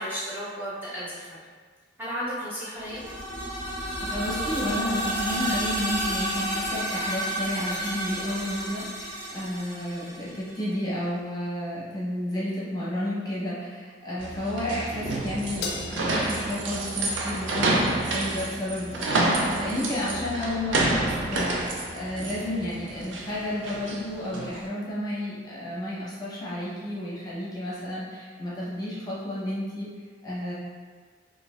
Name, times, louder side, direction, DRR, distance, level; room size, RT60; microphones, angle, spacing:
voice 1, 0.0-1.4 2.0-3.0, equal, 10° right, -11 dB, 0.6 m, -33 dB
sound 1, 2.8-10.6, right 1 dB, 40° right, 1.2 m, -31 dB
voice 2, 4.0-19.3 19.6-29.9 30.2-30.5, left 1 dB, 20° left, -8 dB, 0.8 m, -31 dB
sound 2, 14.2-24.6, right 2 dB, 85° right, 0.5 m, -29 dB
Crash cymbal, 15.6-18.1, left 4 dB, 60° left, 0.4 m, -39 dB
3.9 x 2.6 x 2.4 m, 1.6 s
head